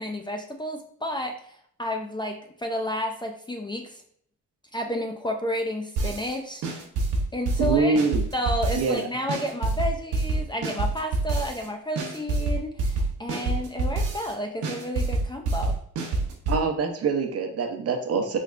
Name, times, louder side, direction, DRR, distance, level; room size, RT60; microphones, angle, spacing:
voice 1, 0.0-4.0 4.7-6.7 7.3-8.0 8.3-15.8, equal, 15° left, 3 dB, 0.4 m, -31 dB
sound 1, 6.0-6.3 6.6-9.0 9.3-11.7 12.0-14.3 14.6-16.6, right 2 dB, 85° right, 0.9 m, -26 dB
voice 2, 7.6-8.2 8.8-9.1 16.5-18.4, right 4 dB, 55° right, 5 dB, 0.7 m, -24 dB
4.1 x 3.1 x 2.5 m, 0.63 s
cardioid pair, 90°, 30 cm